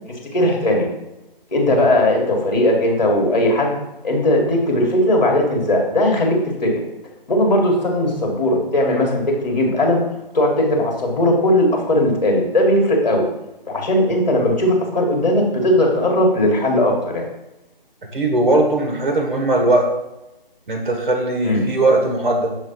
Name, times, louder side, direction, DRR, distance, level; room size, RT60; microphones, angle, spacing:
voice 1, 0.3-0.9 1.5-3.8 4.0-6.7 7.3-10.0 10.3-13.2 13.7-17.3 21.4-21.6, left 1 dB, 45° left, 1 dB, 1.9 m, -18 dB
voice 2, 18.1-19.9 20.7-22.5, right 2 dB, 55° right, 2 dB, 1.6 m, -18 dB
6.9 x 3.2 x 5.6 m, 0.94 s
figure-of-eight pair, 160°, 29 cm